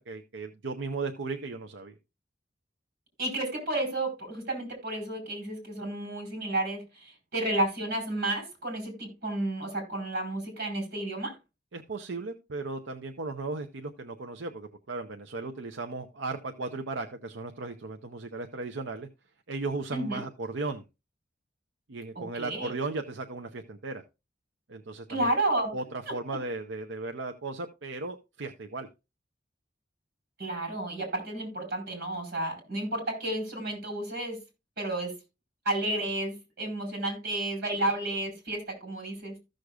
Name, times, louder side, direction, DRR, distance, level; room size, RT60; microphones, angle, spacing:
voice 1, 0.0-2.0 11.7-19.1 19.5-20.8 21.9-24.0 24.7-25.3 25.7-28.9, right 3 dB, 80° right, 0.7 m, -36 dB
voice 2, 3.2-11.4 19.9-20.2 22.1-22.7 25.1-25.8 30.4-34.4 34.8-35.1 35.6-39.4, right 1 dB, 55° right, 4.5 m, -31 dB
15.0 x 6.5 x 2.4 m
head